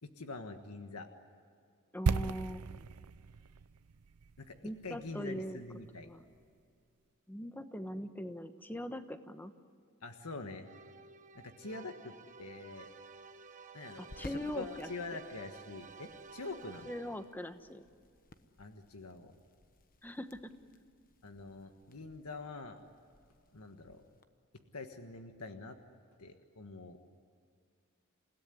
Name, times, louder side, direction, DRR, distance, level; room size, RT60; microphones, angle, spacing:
voice 1, 0.0-1.1 4.4-4.6 4.8-6.1 10.0-10.7 11.3-12.1 12.4-12.9 13.7-16.9 18.6-19.3 21.2-22.8 23.5-24.0 24.7-25.8 26.2-27.1, left 3 dB, 85° left, 6 dB, 1.5 m, -45 dB
voice 2, 1.9-2.7 4.6-5.6 5.9-6.2 7.3-9.5 14.0-14.9 16.9-17.8 20.0-20.4, left 1 dB, 10° left, 9 dB, 1.1 m, -41 dB
sound 1, 2.1-6.0 6.2-6.4, right 4 dB, 90° right, 0.6 m, -37 dB
sound 2, 10.6-17.5, right 4 dB, 35° right, 1.1 m, -53 dB
sound 3, 12.0-24.2, left 2 dB, 40° left, 1.1 m, -59 dB
29.0 x 17.0 x 9.8 m, 2.3 s
head